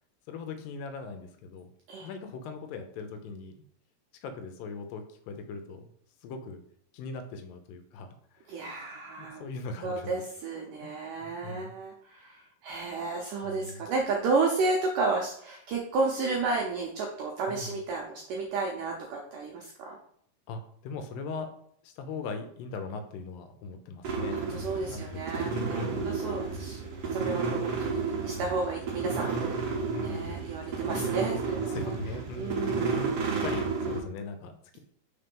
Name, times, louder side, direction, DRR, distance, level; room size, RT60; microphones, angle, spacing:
voice 1, 0.3-1.7 2.0-3.6 4.2-5.9 6.2-6.6 6.9-8.5 9.2-10.2 11.2-11.8 13.4-13.8 17.5-17.8 20.5-21.5 21.8-26.2 29.9-30.4 31.6-32.6 33.4-34.8, left 4 dB, 75° left, 6 dB, 2.1 m, -40 dB
voice 2, 8.5-9.5 9.8-20.0 24.3-26.8 27.1-31.9 32.3-33.0, right 3 dB, 80° right, 0 dB, 1.8 m, -32 dB
sound 1, 24.0-34.0, right 4 dB, 65° right, 1.5 m, -32 dB
5.8 x 3.7 x 5.2 m, 0.64 s
omnidirectional pair, 4.7 m